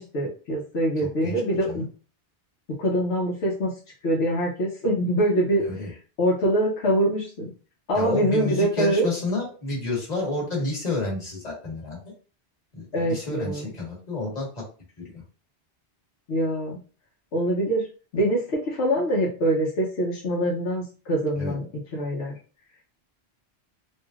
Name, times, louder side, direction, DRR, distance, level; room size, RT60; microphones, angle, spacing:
voice 1, 0.0-1.9 2.8-3.7 4.0-5.6 6.2-7.5 7.9-9.1 12.9-13.7 16.3-16.8 17.3-17.8 18.1-21.6 21.9-22.4, right 1 dB, 80° left, -3 dB, 1.0 m, -24 dB
voice 2, 1.0-1.8 5.6-5.9 7.9-12.0 12.7-14.6 15.0-15.1 21.4-21.5, left 2 dB, 40° left, -3 dB, 1.3 m, -30 dB
3.1 x 2.6 x 2.3 m, 0.37 s
omnidirectional pair, 1.1 m